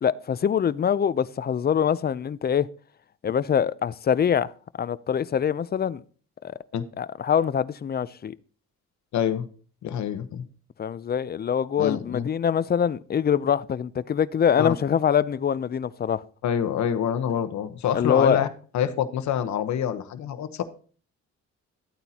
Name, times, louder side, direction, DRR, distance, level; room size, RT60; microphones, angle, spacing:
voice 1, 0.0-2.7 3.2-4.5 4.8-6.0 6.4-6.5 7.0-8.3 10.8-16.2 17.9-18.4, left 8 dB, 35° left, 0.5 m, -24 dB
voice 2, 9.1-9.5 9.8-10.4 11.8-12.3 14.6-14.7 16.4-18.5 18.7-20.6, left 9 dB, 65° left, 1.1 m, -26 dB
13.0 x 8.9 x 2.9 m
cardioid pair, 90°, 30 cm